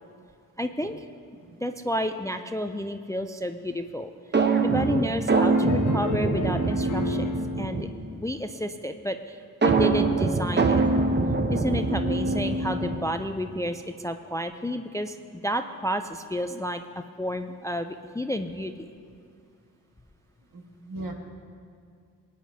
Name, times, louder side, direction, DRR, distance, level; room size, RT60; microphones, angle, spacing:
voice 1, 0.6-1.1 1.6-4.1 4.6-10.8 11.5-16.8 17.2-18.7, equal, 10° left, 8 dB, 0.3 m, -31 dB
sound 1, 4.3-8.1 9.6-13.2, right 3 dB, 30° right, 0.8 m, -24 dB
sound 2, 5.3-7.5, left 2 dB, 60° left, 1.1 m, -34 dB
voice 2, 20.5-21.1, right 2 dB, 70° right, 0 dB, 1.6 m, -40 dB
20.0 x 9.3 x 2.7 m, 2.3 s
wide cardioid pair, 80°, 35 cm